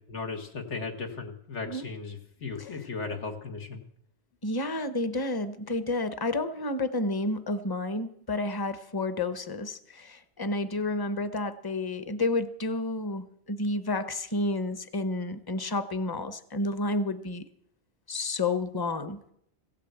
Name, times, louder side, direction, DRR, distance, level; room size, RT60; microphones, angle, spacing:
voice 1, 0.0-3.8, left 4 dB, 90° left, 4 dB, 1.9 m, -36 dB
voice 2, 4.4-17.4 18.1-19.3, left 2 dB, 25° left, 12 dB, 0.8 m, -30 dB
16.0 x 8.6 x 8.0 m, 0.72 s
omnidirectional pair, 1.2 m